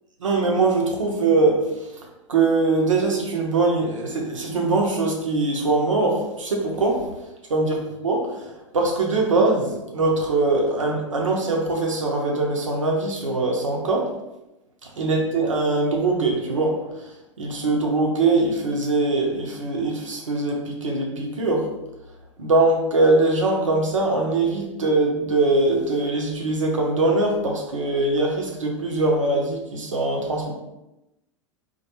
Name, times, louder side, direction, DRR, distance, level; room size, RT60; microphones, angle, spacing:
voice 1, 0.2-1.9 2.3-7.1 7.5-14.1 15.0-16.8 17.4-21.7 22.4-30.5, right 2 dB, 90° right, 0 dB, 0.6 m, -22 dB
2.2 x 2.2 x 2.8 m, 0.93 s
hypercardioid pair, 100°, 16 cm